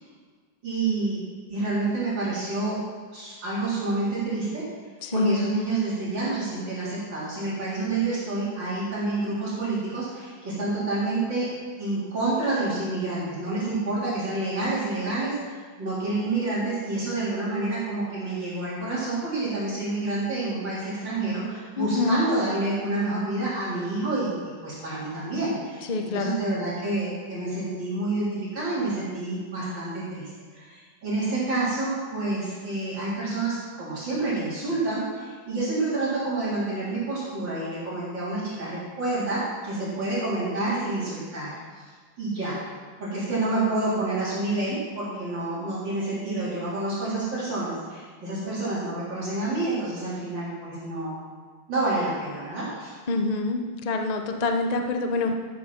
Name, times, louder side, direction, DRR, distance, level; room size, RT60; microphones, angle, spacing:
voice 1, 0.6-1.2 1.5-2.8 3.1-4.6 5.1-11.5 11.8-24.3 24.6-41.8 42.2-42.6 43.0-51.2 51.7-52.9, right 2 dB, 60° right, -9 dB, 4.3 m, -28 dB
voice 2, 5.0-5.4 21.8-22.2 25.9-26.4 53.1-53.6 53.8-55.3, left 3 dB, 65° left, 5 dB, 0.4 m, -25 dB
13.0 x 7.6 x 5.9 m, 1.5 s
omnidirectional pair, 2.3 m